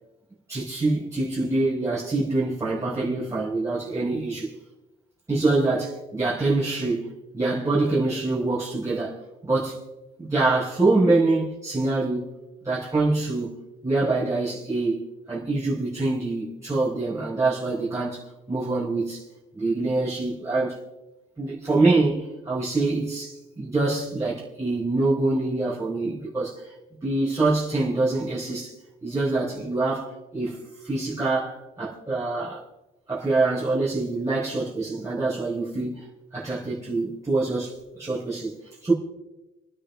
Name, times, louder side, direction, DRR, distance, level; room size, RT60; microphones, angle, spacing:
voice 1, 0.5-4.5 5.3-9.2 9.4-9.8 10.2-12.2 12.6-13.5 13.8-18.2 18.5-19.2 19.5-20.8 21.4-26.6 27.0-28.7 29.0-32.6 33.1-36.0 36.3-38.5 38.8-38.9, right 2 dB, 15° right, 4.9 m, -25 dB
29.5 x 10.5 x 3.6 m
cardioid pair, 90°, 20 cm